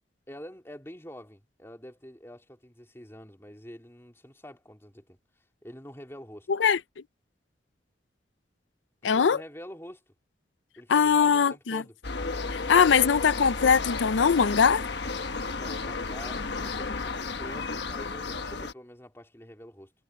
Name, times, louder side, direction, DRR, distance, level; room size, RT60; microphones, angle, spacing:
voice 1, 0.3-5.2 5.6-6.5 9.0-10.0 10.8-11.9 15.6-19.9, equal, 15° left, 3.3 m, -46 dB
voice 2, 6.5-6.8 9.0-9.4 10.9-11.8 12.5-14.8, left 6 dB, 90° left, 0.5 m, -21 dB
sound 1, 12.0-18.7, left 4 dB, 70° left, 1.2 m, -33 dB
head